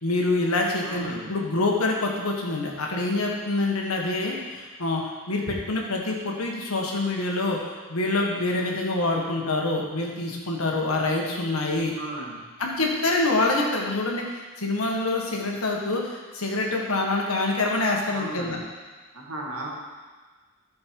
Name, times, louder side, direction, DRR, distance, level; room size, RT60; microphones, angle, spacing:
voice 1, 0.0-11.9 12.6-18.6, left 2 dB, 85° left, 0 dB, 1.6 m, -26 dB
voice 2, 0.8-1.3 11.9-12.4 18.1-18.6 19.1-19.7, right 2 dB, 90° right, -2 dB, 2.0 m, -35 dB
13.0 x 5.3 x 4.7 m, 1.4 s
head